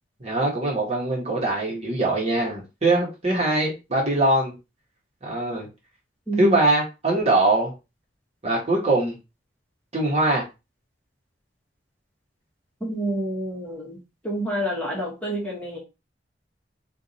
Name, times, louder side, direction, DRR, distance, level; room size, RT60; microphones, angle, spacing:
voice 1, 0.2-4.5 5.2-5.7 6.4-7.7 8.4-9.1 9.9-10.4, right 2 dB, 35° right, 1.4 m, -22 dB
voice 2, 6.3-6.6 12.8-14.0 14.2-15.8, right 1 dB, 10° left, 1.3 m, -28 dB
3.5 x 2.6 x 4.1 m
head